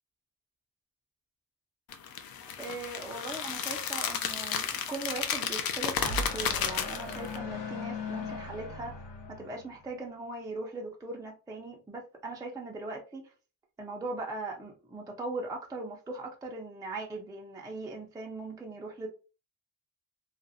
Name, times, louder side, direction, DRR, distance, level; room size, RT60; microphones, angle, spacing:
sound 1, 1.9-7.4, left 7 dB, 55° left, 0.5 m, -33 dB
voice 1, 2.6-9.0 9.3-13.3 13.8-19.1, right 2 dB, 10° right, 0.4 m, -39 dB
sound 2, 5.3-9.9, left 3 dB, 75° left, 0.9 m, -39 dB
2.4 x 2.0 x 2.6 m
cardioid pair, 95°, 43 cm